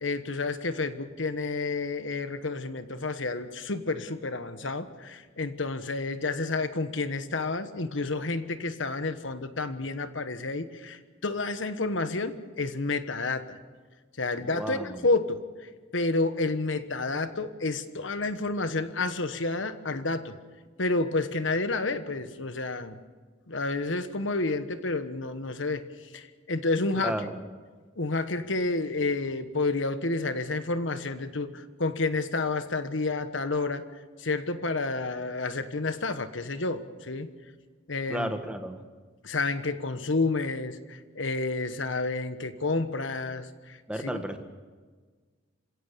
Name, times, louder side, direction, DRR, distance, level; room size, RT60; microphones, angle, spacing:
voice 1, 0.0-13.6 14.2-20.3 20.8-23.0 23.5-25.8 26.1-27.2 28.0-33.8 34.2-37.3 37.9-38.3 39.2-44.2, left 3 dB, 80° left, 10 dB, 1.3 m, -30 dB
voice 2, 14.4-15.1 27.0-27.3 38.1-38.8 43.9-44.4, right 1 dB, 5° right, 6 dB, 1.5 m, -33 dB
27.5 x 16.5 x 6.9 m, 1.5 s
head